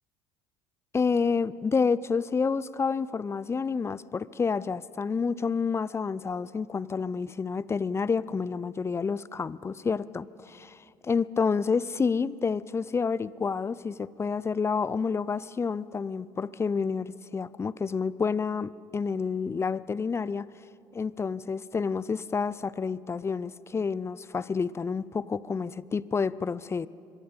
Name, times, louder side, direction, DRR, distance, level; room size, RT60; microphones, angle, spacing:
voice 1, 0.9-20.5 20.9-26.9, left 5 dB, 25° left, 20 dB, 0.5 m, -29 dB
25.0 x 22.0 x 5.3 m, 2.6 s
hypercardioid pair, 65°, 11 cm